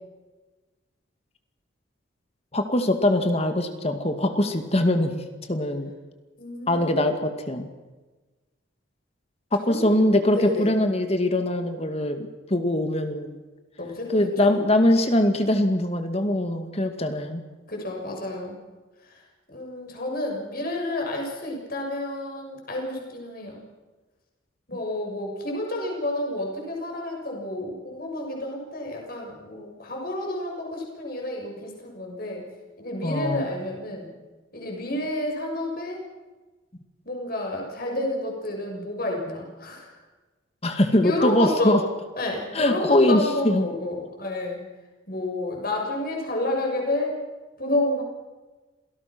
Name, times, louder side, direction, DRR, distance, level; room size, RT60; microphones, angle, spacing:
voice 1, 2.5-5.9 6.7-7.7 9.5-13.4 14.1-17.4 33.0-33.5 40.6-41.8 42.5-43.7, left 1 dB, 30° left, 7 dB, 2.1 m, -22 dB
voice 2, 6.4-7.3 9.6-10.0 10.3-10.7 13.8-14.3 17.7-18.6 19.1-19.2 19.5-23.6 24.7-32.4 32.8-34.1 34.5-36.0 37.0-39.9 40.7-41.8 42.2-44.6 45.1-47.2 47.6-48.0, left 1 dB, 45° left, 0 dB, 7.0 m, -30 dB
27.5 x 18.5 x 6.2 m, 1.2 s
head